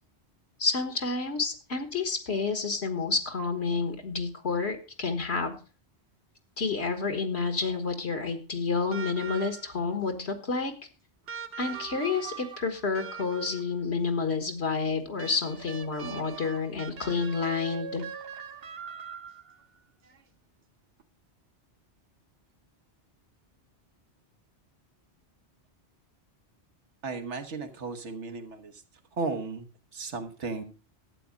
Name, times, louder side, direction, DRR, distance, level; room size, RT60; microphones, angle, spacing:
voice 1, 0.6-5.6 6.6-10.7 11.6-18.0, left 4 dB, 70° left, 7 dB, 1.7 m, -29 dB
sound 1, 8.9-9.9 11.3-13.8 15.2-19.6 21.0-21.1, right 7 dB, 60° right, 1.1 m, -41 dB
voice 2, 27.0-28.8 29.1-30.6, right 4 dB, 90° right, 7 dB, 1.6 m, -35 dB
12.0 x 8.3 x 5.0 m, 0.35 s
omnidirectional pair, 1.2 m